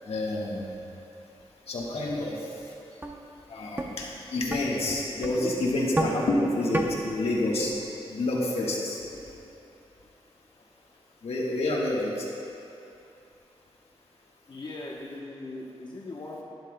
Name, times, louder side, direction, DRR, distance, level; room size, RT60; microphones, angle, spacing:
voice 1, 0.1-0.8 1.7-2.5 3.5-7.7 8.1-9.0 11.2-12.3, left 2 dB, 80° left, -3 dB, 1.4 m, -28 dB
sound 1, 2.4-2.5 3.0-3.2 3.8-3.9 4.5-4.6 5.2-5.4 6.0-6.2 6.7-6.9, right 2 dB, 20° right, 0.6 m, -28 dB
voice 2, 14.5-16.4, left 2 dB, 45° left, -5 dB, 0.9 m, -39 dB
11.5 x 10.5 x 2.2 m, 2.7 s
wide cardioid pair, 120°, 10 cm